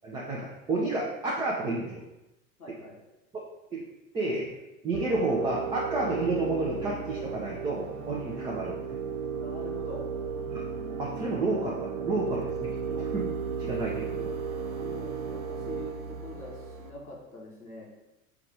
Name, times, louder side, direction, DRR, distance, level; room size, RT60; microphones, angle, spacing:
voice 1, 0.0-2.0 3.7-3.8 4.1-4.5 4.8-8.7 10.5-10.7 11.0-13.3 13.6-14.4, right 2 dB, 10° right, -4 dB, 0.5 m, -30 dB
voice 2, 2.6-3.0 9.3-10.1 14.8-17.8, left 1 dB, 90° left, -3 dB, 1.0 m, -43 dB
sound 1, 4.9-16.9, right 6 dB, 80° right, 0.6 m, -35 dB
4.7 x 2.4 x 4.7 m, 0.95 s
figure-of-eight pair, 80°, 43 cm